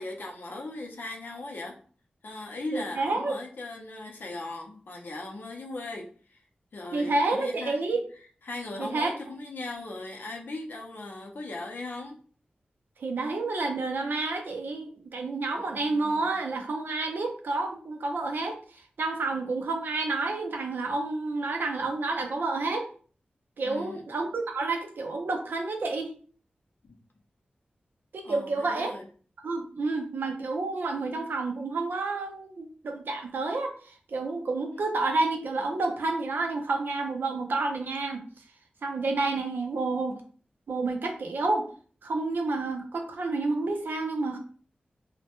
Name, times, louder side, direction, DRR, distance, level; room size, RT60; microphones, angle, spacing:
voice 1, 0.0-1.8 2.2-6.4 6.7-7.8 8.5-12.2 15.6-16.4 23.6-24.1 26.8-27.0 28.2-29.1, left 2 dB, 75° left, 0 dB, 0.5 m, -38 dB
voice 2, 2.7-3.4 6.9-8.0 8.8-9.1 13.0-22.9 23.6-26.1 28.1-28.9 29.4-38.2 38.8-40.2 40.7-41.7 42.0-44.4, right 3 dB, 90° right, 3 dB, 0.4 m, -29 dB
2.1 x 2.1 x 2.9 m, 0.43 s
wide cardioid pair, 105°, 3 cm